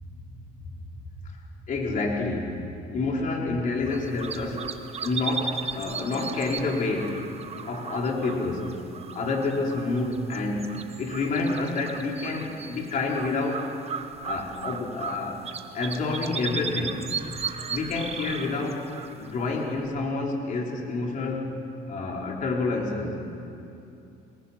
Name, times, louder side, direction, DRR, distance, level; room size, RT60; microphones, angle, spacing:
voice 1, 1.7-2.6 2.9-4.6 5.0-7.2 7.6-8.7 9.1-10.7 11.0-13.7 14.2-15.4 15.7-17.0 17.7-18.9 19.2-21.5 21.9-23.2, left 3 dB, 50° left, 0 dB, 4.0 m, -28 dB
sound 1, 3.8-19.9, right 6 dB, 40° right, 1.2 m, -37 dB
29.0 x 19.5 x 5.8 m, 2.7 s
cardioid pair, 110°, 17 cm